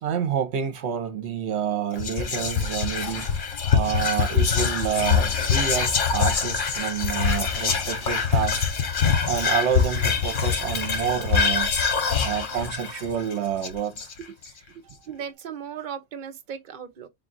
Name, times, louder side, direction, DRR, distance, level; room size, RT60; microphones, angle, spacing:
voice 1, 0.0-3.3 3.7-8.7 9.3-11.7 12.2-14.3, right 8 dB, 70° right, 1.0 m, -28 dB
Whispering, 2.0-14.4, left 6 dB, 50° left, 0.7 m, -24 dB
Gunshot gunfire, 2.9-3.5 4.6-6.1 7.2-8.6 9.8-11.2, equal, ahead, 0.9 m, -46 dB
voice 2, 14.8-17.1, right 8 dB, 50° right, 0.7 m, -37 dB
3.7 x 2.3 x 3.8 m
omnidirectional pair, 1.2 m